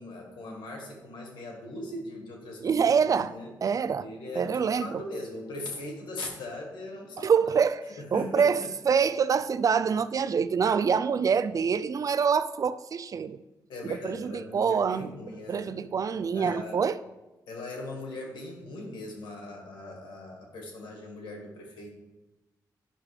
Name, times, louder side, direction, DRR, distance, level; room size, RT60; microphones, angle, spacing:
voice 1, 0.0-3.5 4.0-7.5 8.0-8.7 13.7-15.8 16.2-16.8 17.5-22.0, left 2 dB, 90° left, 1.6 m, -40 dB
voice 2, 2.6-3.3 3.6-4.1 4.4-5.0 7.2-7.8 8.1-13.4 13.8-15.1 15.5-17.0, right 6 dB, 50° right, 0.4 m, -25 dB
9.9 x 5.9 x 3.2 m
cardioid pair, 75°, 8 cm